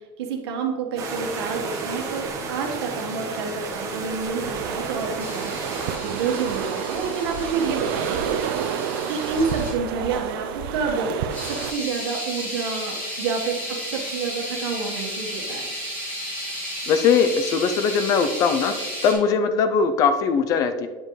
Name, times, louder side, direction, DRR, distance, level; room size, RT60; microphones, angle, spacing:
voice 1, 0.2-5.6 6.0-8.2 9.1-15.7, right 5 dB, 85° right, 2 dB, 1.5 m, -29 dB
sound 1, 1.0-6.0, right 4 dB, 25° right, 1.0 m, -32 dB
sound 2, 4.4-11.7, right 8 dB, 60° right, 0.5 m, -29 dB
sound 3, 5.2-9.7 11.3-19.1, equal, 10° left, 2.2 m, -33 dB
voice 2, 16.9-18.7 19.0-20.9, left 6 dB, 25° left, 9 dB, 0.4 m, -20 dB
8.7 x 7.5 x 3.2 m, 1.4 s
supercardioid pair, 180°, 13 cm